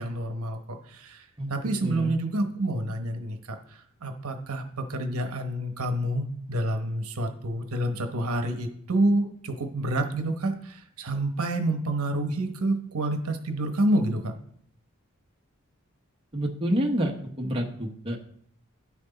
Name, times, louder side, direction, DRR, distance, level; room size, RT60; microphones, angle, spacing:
voice 1, 0.0-14.4, right 1 dB, 70° right, 6 dB, 1.0 m, -28 dB
voice 2, 1.8-2.1 16.3-18.2, equal, 25° right, 0 dB, 1.0 m, -28 dB
9.5 x 6.1 x 4.0 m, 0.66 s
head